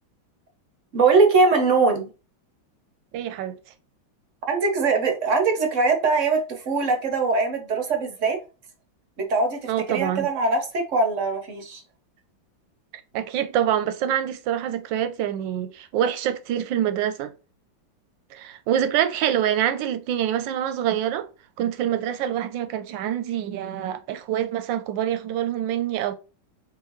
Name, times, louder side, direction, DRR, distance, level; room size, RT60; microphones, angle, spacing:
voice 1, 0.9-2.1 4.5-8.4 9.2-11.8, right 4 dB, 55° right, 0.8 m, -21 dB
voice 2, 3.1-3.6 9.7-10.3 13.1-17.3 18.3-21.3 21.6-26.2, right 10 dB, 75° right, 1.2 m, -25 dB
4.8 x 3.0 x 3.0 m
omnidirectional pair, 2.2 m